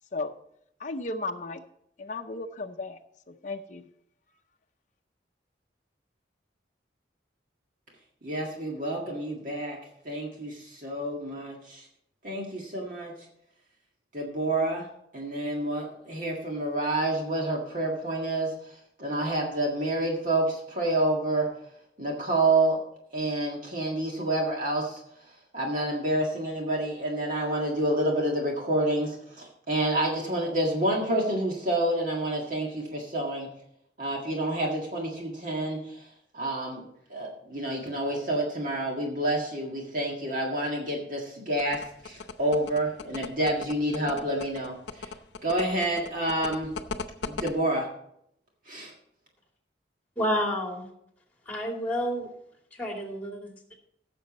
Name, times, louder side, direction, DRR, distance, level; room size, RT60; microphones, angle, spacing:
voice 1, 0.8-1.6 2.0-3.0 3.3-3.8, left 3 dB, 45° left, 4 dB, 0.6 m, -34 dB
voice 2, 8.2-9.8 10.1-11.9 12.2-13.1 14.1-14.8 15.1-21.5 22.0-22.8 23.1-25.0 25.5-33.5 34.0-36.1 36.3-36.8 37.1-45.1 45.4-46.7 47.3-47.9 48.7-48.9, right 1 dB, 45° right, -1 dB, 1.8 m, -28 dB
sound 1, 41.6-47.5, left 5 dB, 75° left, 0.8 m, -37 dB
voice 3, 50.2-50.9 51.5-52.3 52.7-53.7, equal, 10° left, 1 dB, 2.5 m, -30 dB
16.0 x 6.9 x 4.2 m, 0.73 s
head